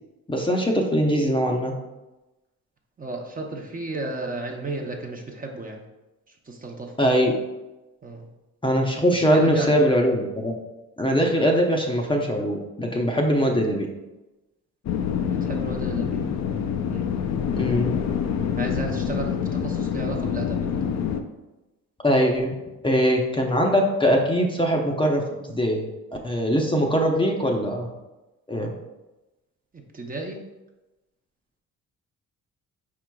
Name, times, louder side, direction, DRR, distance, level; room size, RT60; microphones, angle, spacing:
voice 1, 0.3-1.7 7.0-7.3 8.6-10.5 11.0-13.9 17.6-17.9 22.0-22.5 22.8-25.8 26.2-27.9 28.5-28.7, equal, 15° left, 1 dB, 0.6 m, -21 dB
voice 2, 3.0-5.8 6.5-6.9 8.0-8.3 9.1-9.7 15.3-16.3 16.9-17.1 18.6-20.8 29.9-30.4, right 2 dB, 30° right, 1 dB, 0.7 m, -33 dB
sound 1, 14.8-21.2, left 7 dB, 65° left, 0.5 m, -26 dB
4.9 x 4.7 x 2.3 m, 1.0 s
cardioid pair, 90°, 30 cm